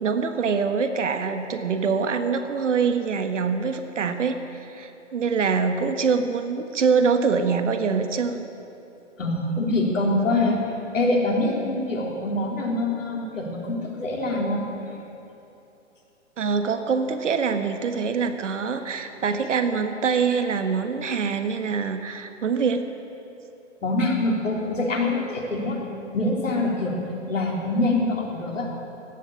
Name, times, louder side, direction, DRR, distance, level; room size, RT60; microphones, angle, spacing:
voice 1, 0.0-4.4 4.7-8.5 16.4-22.9, right 5 dB, 75° right, 8 dB, 1.5 m, -24 dB
voice 2, 9.2-10.6 10.9-14.7 23.8-25.8 26.1-26.9 27.3-28.7, left 2 dB, 85° left, -1 dB, 3.7 m, -24 dB
17.0 x 11.5 x 7.2 m, 2.9 s
hypercardioid pair, 130°, 37 cm